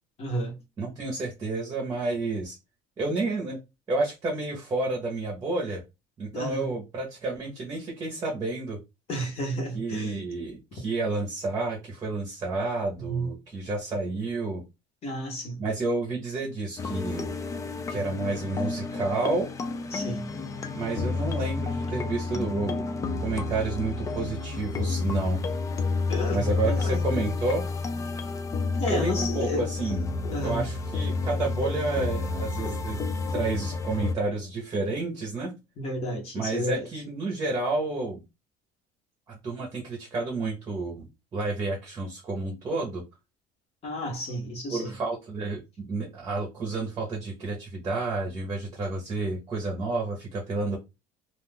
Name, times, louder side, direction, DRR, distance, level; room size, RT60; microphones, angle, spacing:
voice 1, 0.2-0.6 6.3-6.7 9.1-10.2 13.1-13.3 15.0-15.6 19.9-20.3 26.1-27.0 28.8-29.6 30.3-30.6 35.8-36.9 43.8-44.9, equal, 40° left, 1.0 m, -31 dB
voice 2, 0.8-2.6 3.0-3.6 3.9-5.8 6.2-8.8 9.7-14.6 15.6-17.3 17.9-19.5 20.7-22.9 23.2-25.4 26.3-27.7 28.9-30.0 30.4-33.0 33.3-35.5 36.3-38.2 39.3-41.1 41.3-43.0 44.7-50.8, right 3 dB, 25° right, 0.8 m, -30 dB
sound 1, 16.8-34.1, left 4 dB, 20° left, 0.4 m, -30 dB
2.5 x 2.4 x 3.5 m
cardioid pair, 140°, 15 cm